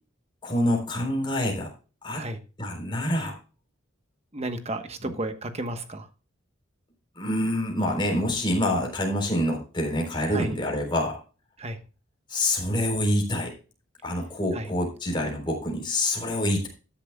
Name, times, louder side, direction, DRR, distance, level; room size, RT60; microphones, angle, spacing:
voice 1, 0.4-1.7 2.0-2.2 2.6-3.4 5.0-5.1 7.2-11.2 12.3-13.5 14.0-16.7, left 1 dB, 25° left, 1 dB, 3.8 m, -26 dB
voice 2, 4.3-6.1 10.3-10.6 11.6-11.8 14.5-14.7, right 1 dB, 30° right, 8 dB, 1.1 m, -33 dB
13.5 x 10.0 x 2.3 m, 0.34 s
head